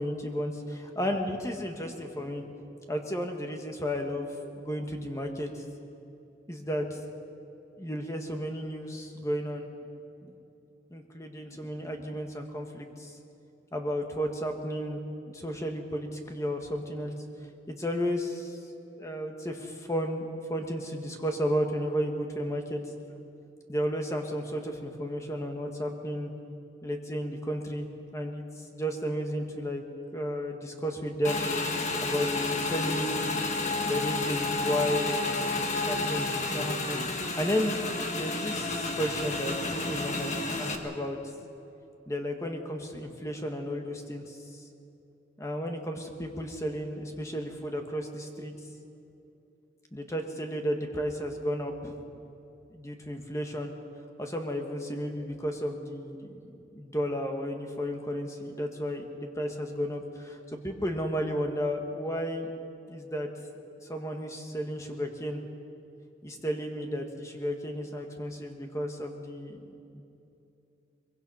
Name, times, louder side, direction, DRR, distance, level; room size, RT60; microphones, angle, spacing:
voice 1, 0.0-2.4 2.9-4.3 4.6-5.6 6.5-7.0 7.8-9.7 10.2-10.3 10.9-13.1 13.7-15.0 15.3-17.1 17.7-18.6 19.0-22.8 23.7-26.3 26.8-28.4 28.7-29.8 30.1-31.4 32.0-33.3 33.9-35.2 35.5-37.8 38.1-41.2 42.1-44.4 45.4-48.5 49.9-51.9 52.7-53.7 54.2-62.5 62.9-63.3 63.9-65.4 66.2-69.7 69.9-70.0, equal, 15° left, 3 dB, 1.7 m, -33 dB
Motorcycle / Engine, 31.2-40.8, left 3 dB, 40° left, 1.6 m, -30 dB
23.0 x 22.0 x 5.7 m, 2.8 s
head